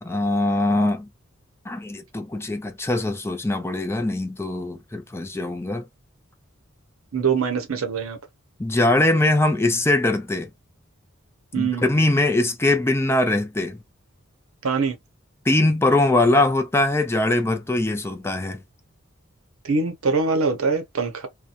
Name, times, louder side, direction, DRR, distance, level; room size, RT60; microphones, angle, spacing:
voice 1, 0.0-1.1 1.7-5.9 8.6-10.5 11.6-13.8 15.5-18.6, left 2 dB, 10° left, 0.4 m, -22 dB
voice 2, 7.1-8.2 11.5-11.8 14.6-15.0 19.6-21.3, right 4 dB, 80° right, 0.7 m, -23 dB
2.8 x 2.2 x 2.4 m
head